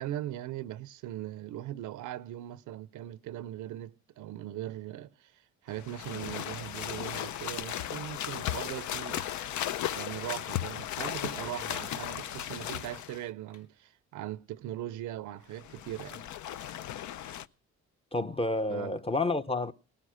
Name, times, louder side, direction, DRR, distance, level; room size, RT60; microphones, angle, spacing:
voice 1, 0.0-5.3 5.6-9.3 9.8-16.2 18.7-19.0, right 13 dB, 80° right, 0.6 m, -40 dB
sound 1, 5.7-13.2 15.5-17.5, left 11 dB, 75° left, 0.6 m, -36 dB
sound 2, 6.1-6.7 7.4-7.6 8.0-8.1 9.0-10.1 10.6-10.9 11.3-11.6 12.0-12.3 12.6-12.7 13.2-14.0, left 4 dB, 55° left, 1.7 m, -55 dB
voice 2, 18.1-19.7, left 2 dB, 20° left, 0.7 m, -29 dB
19.0 x 10.0 x 6.3 m
cardioid pair, 90°, 30 cm